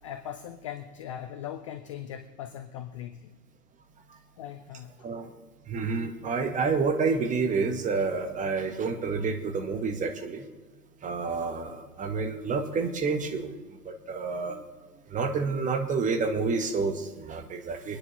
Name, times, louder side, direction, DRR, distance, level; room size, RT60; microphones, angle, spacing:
voice 1, 0.0-3.4 4.4-5.1, left 10 dB, 25° left, 8 dB, 0.4 m, -40 dB
voice 2, 5.7-10.5 11.0-13.5 13.8-14.6 15.1-18.0, right 4 dB, 15° right, 6 dB, 1.1 m, -29 dB
24.5 x 9.9 x 3.0 m, 1.3 s
figure-of-eight pair, 105°, 47 cm